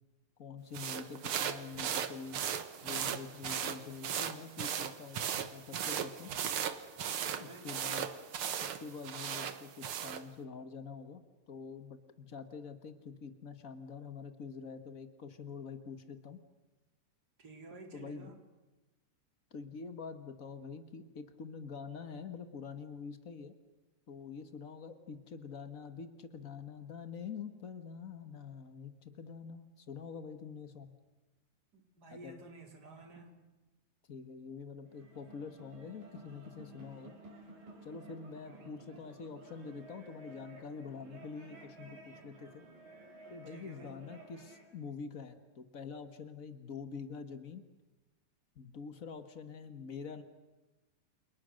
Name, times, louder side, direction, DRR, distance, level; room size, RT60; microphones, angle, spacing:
voice 1, 0.4-2.4 2.8-6.3 7.4-8.1 8.6-16.4 17.9-18.3 19.5-23.5 24.1-30.9 32.1-32.4 34.1-37.1 37.8-42.6 43.3-47.6 48.5-50.2, left 5 dB, 85° left, 9 dB, 0.7 m, -46 dB
sound 1, 0.7-10.2, right 8 dB, 55° right, 1.6 m, -37 dB
voice 2, 7.2-7.7 17.4-18.4 31.7-33.4 38.4-38.8 43.5-44.0, right 2 dB, 25° right, 3 dB, 4.3 m, -52 dB
sound 2, 34.8-44.7, right 2 dB, 75° right, 7.0 m, -54 dB
29.5 x 28.5 x 6.5 m, 1.1 s
omnidirectional pair, 4.0 m